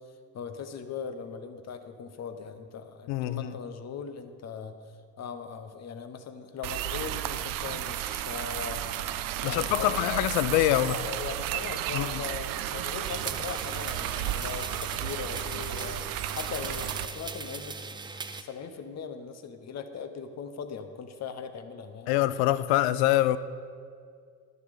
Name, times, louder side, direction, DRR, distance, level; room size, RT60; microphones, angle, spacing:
voice 1, 0.3-4.8 5.2-8.9 9.4-10.2 10.8-16.1 16.3-18.0 18.3-22.3, left 6 dB, 35° left, 1.0 m, -39 dB
voice 2, 3.1-3.5 9.4-11.0 11.9-12.2 22.1-23.4, left 14 dB, 55° left, 0.6 m, -25 dB
sound 1, 6.6-17.1, right 12 dB, 50° right, 0.6 m, -33 dB
sound 2, 13.0-18.4, right 4 dB, 10° right, 0.4 m, -39 dB
11.5 x 6.7 x 5.2 m
hypercardioid pair, 65°, 46 cm